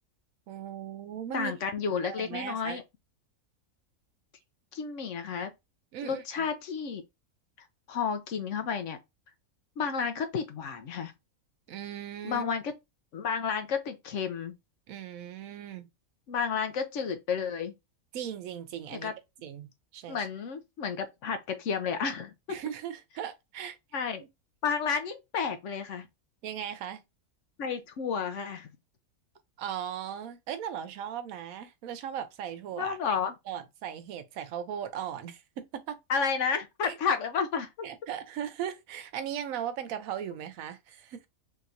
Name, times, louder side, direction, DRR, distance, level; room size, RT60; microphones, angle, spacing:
voice 1, 0.5-1.5 2.0-2.8 5.9-6.2 11.7-12.4 14.9-15.9 18.1-19.1 19.4-20.2 22.5-23.8 26.4-27.0 29.6-33.2 33.5-36.0 37.8-41.3, right 9 dB, 75° right, 1.0 m, -38 dB
voice 2, 1.3-2.8 4.7-5.5 6.0-7.0 7.6-9.0 9.8-11.1 12.2-12.7 13.1-14.5 16.3-17.7 18.9-19.1 20.1-22.6 23.9-24.2 24.6-26.1 27.6-28.7 32.8-33.3 36.1-37.7, left 6 dB, 65° left, 0.9 m, -31 dB
3.4 x 2.9 x 2.5 m
omnidirectional pair, 1.5 m